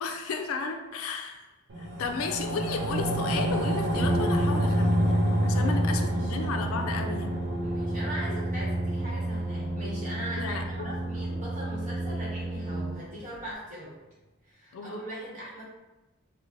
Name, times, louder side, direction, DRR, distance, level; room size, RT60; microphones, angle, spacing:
voice 1, 0.0-1.4 1.8-7.3 10.4-10.9 14.7-14.9, left 4 dB, 80° left, 5 dB, 0.3 m, -34 dB
sound 1, 1.7-12.3 12.7-12.8, equal, 55° right, 0.4 m, -29 dB
Brass instrument, 3.9-13.4, right 1 dB, 25° left, 0.6 m, -32 dB
voice 2, 5.5-6.3 7.6-14.0 14.4-15.6, equal, 35° right, -8 dB, 1.1 m, -40 dB
3.0 x 2.1 x 2.5 m, 1.0 s
head